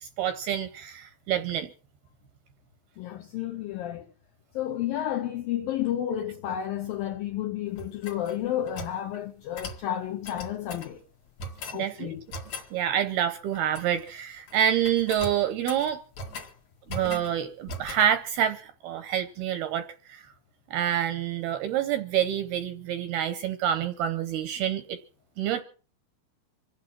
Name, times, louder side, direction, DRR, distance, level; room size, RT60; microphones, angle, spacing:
voice 1, 0.0-1.7 11.7-12.2 12.7-16.0 16.9-20.2 20.7-25.0 25.4-25.6, right 10 dB, 75° right, 2.4 m, -27 dB
voice 2, 3.0-4.1 4.5-11.0 11.7-12.3, left 11 dB, 80° left, 2.1 m, -31 dB
sound 1, 7.7-9.0 9.5-9.8 10.2-10.9 11.4-11.8 12.3-12.7 13.5-14.1 14.4-14.6 14.8-16.5 16.9-17.3 17.7-18.1, left 1 dB, 50° left, 2.5 m, -39 dB
26.0 x 8.7 x 6.0 m
omnidirectional pair, 5.4 m